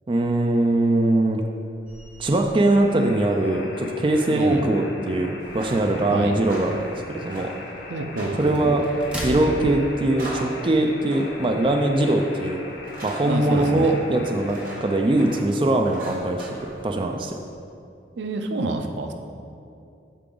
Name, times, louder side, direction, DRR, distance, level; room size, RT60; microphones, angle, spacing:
voice 1, 0.1-1.4 2.2-7.5 8.4-8.8 9.2-12.6 13.0-16.5 16.8-17.4, right 1 dB, 30° right, 3 dB, 0.4 m, -21 dB
sound 1, 1.9-10.8, equal, 5° right, 0.9 m, -40 dB
sound 2, 2.7-15.4, left 2 dB, 80° left, 1.0 m, -40 dB
voice 2, 4.3-4.6 6.1-6.4 7.9-8.8 13.2-14.0 18.2-19.1, right 2 dB, 80° right, 5 dB, 0.6 m, -28 dB
sound 3, 5.3-17.2, right 1 dB, 50° right, 1.4 m, -41 dB
8.3 x 5.9 x 3.8 m, 2.6 s
head